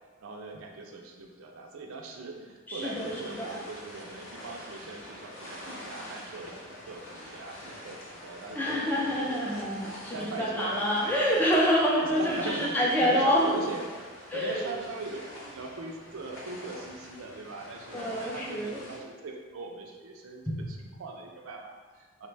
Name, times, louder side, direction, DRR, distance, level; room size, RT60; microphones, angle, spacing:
voice 1, 0.2-9.5 10.1-11.6 12.0-13.8 14.3-22.3, right 3 dB, 85° right, 2 dB, 0.4 m, -40 dB
voice 2, 2.7-3.6 8.5-13.5 14.3-14.8 17.9-18.8 20.5-20.6, equal, 10° left, -4 dB, 0.3 m, -27 dB
sound 1, 2.8-19.0, left 1 dB, 70° left, 0.7 m, -45 dB
3.1 x 2.1 x 3.2 m, 1.4 s
head